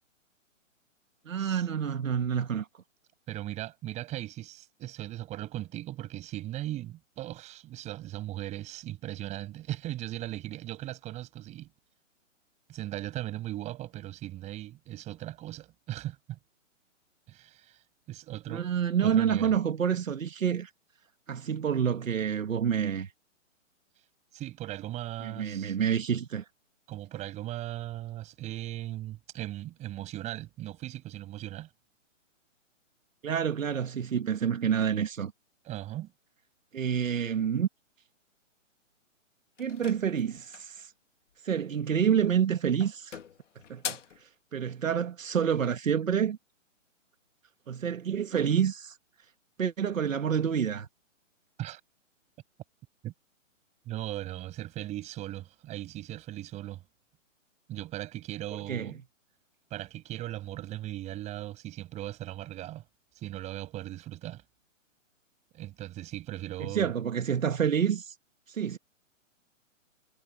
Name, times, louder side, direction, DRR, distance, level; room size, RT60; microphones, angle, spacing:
voice 1, 1.3-2.7 18.5-20.7 21.3-23.1 25.2-26.5 33.2-35.3 36.7-37.7 39.6-40.9 41.4-43.2 43.7-46.4 47.7-49.0 49.6-50.9 58.7-58.9 66.6-68.1 68.5-68.8, right 8 dB, 80° right, 1.8 m, -28 dB
voice 2, 3.3-11.7 12.7-16.4 17.3-17.8 18.1-18.7 19.0-19.5 24.3-25.7 26.9-31.7 35.6-36.1 51.6-51.8 53.0-53.1 53.8-56.8 57.7-59.0 59.7-62.8 63.1-64.4 65.5-66.9, right 14 dB, 15° right, 6.8 m, -38 dB
sound 1, 39.6-40.8 42.1-42.5 42.8-44.2, left 8 dB, 65° left, 2.5 m, -41 dB
hypercardioid pair, 155°, 39 cm